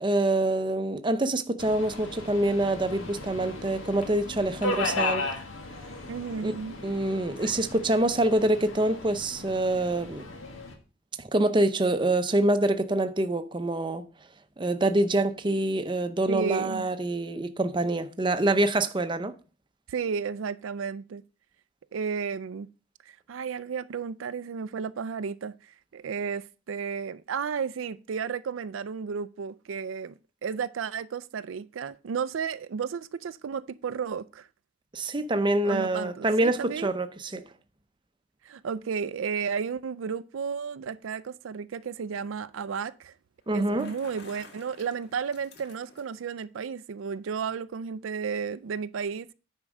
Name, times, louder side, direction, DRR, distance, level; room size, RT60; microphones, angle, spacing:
voice 1, 0.0-5.3 6.4-6.5 6.8-10.3 11.2-14.0 14.6-19.3 34.9-37.4 43.5-43.9, right 1 dB, 25° right, 0.6 m, -26 dB
Subway metro underground, 1.6-10.7, left 2 dB, 80° left, 1.7 m, -36 dB
voice 2, 6.1-6.8 16.3-16.9 19.9-21.2 21.9-22.7 23.1-30.1 30.4-34.5 35.6-36.9 38.4-43.1 43.5-49.3, right 6 dB, 80° right, 0.4 m, -33 dB
Bicycle, 43.4-46.3, left 3 dB, 55° left, 1.8 m, -51 dB
9.8 x 4.5 x 6.2 m
head